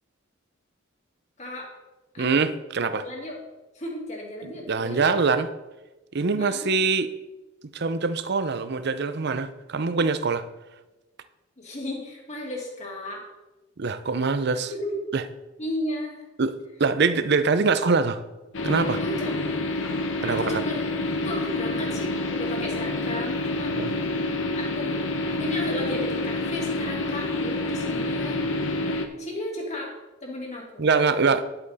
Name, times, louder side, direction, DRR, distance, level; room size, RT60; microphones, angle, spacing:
voice 1, 1.4-1.7 2.1-2.5 2.8-3.4 3.7-5.1 6.4-6.7 11.6-13.3 14.7-15.0 15.6-16.3 19.0-19.4 20.3-24.1 24.6-25.0 25.3-28.5 29.2-29.9 30.2-30.9, left 1 dB, 35° left, 0 dB, 2.3 m, -34 dB
voice 2, 2.2-3.0 4.7-5.5 6.1-7.1 7.7-10.4 13.8-14.7 15.1-15.2 16.4-16.5 16.8-18.2 18.6-19.0 20.2-20.6 23.7-23.9 30.8-31.4, right 4 dB, 55° right, 12 dB, 0.6 m, -23 dB
sound 1, 18.5-29.1, left 2 dB, 65° left, 1.0 m, -28 dB
10.5 x 7.9 x 4.1 m, 1.1 s
head